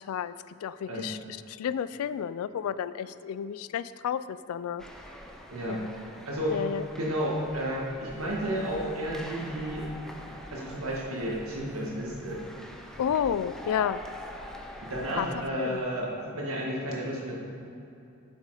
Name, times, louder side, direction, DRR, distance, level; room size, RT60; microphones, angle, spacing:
voice 1, 0.6-1.2 1.5-4.8 5.7-5.9 6.5-6.8 13.0-14.0 15.1-15.3 15.6-15.8, left 8 dB, 80° left, 15 dB, 0.3 m, -31 dB
sound 1, 4.8-15.4, left 1 dB, ahead, 0.7 m, -44 dB
voice 2, 5.5-5.8 6.2-6.6 7.0-9.9 10.5-12.4 14.8-17.4, equal, 85° right, -3 dB, 1.8 m, -32 dB
7.4 x 7.2 x 4.9 m, 2.7 s
head